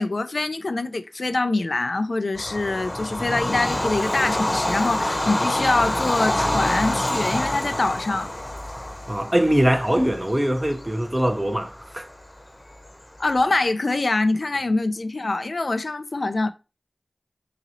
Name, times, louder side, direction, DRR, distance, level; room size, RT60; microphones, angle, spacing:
voice 1, 0.0-8.3 13.2-16.5, left 2 dB, 70° left, 0.4 m, -24 dB
Bird vocalization bird call bird song / Train, 2.3-13.5, left 1 dB, 30° left, 0.9 m, -27 dB
voice 2, 9.1-12.1, right 1 dB, 20° right, 0.7 m, -22 dB
3.9 x 3.0 x 2.6 m
wide cardioid pair, 45°, 0 cm